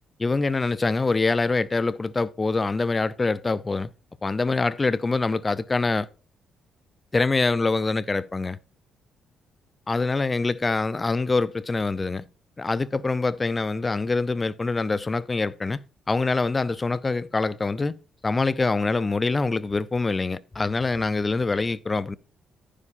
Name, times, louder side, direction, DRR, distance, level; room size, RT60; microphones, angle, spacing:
voice 1, 0.2-3.9 4.2-6.1 7.1-8.6 9.9-12.2 12.6-15.8 16.1-17.9 18.2-22.2, left 3 dB, 25° left, 0.5 m, -25 dB
11.0 x 9.9 x 2.5 m
cardioid pair, 90°, 0 cm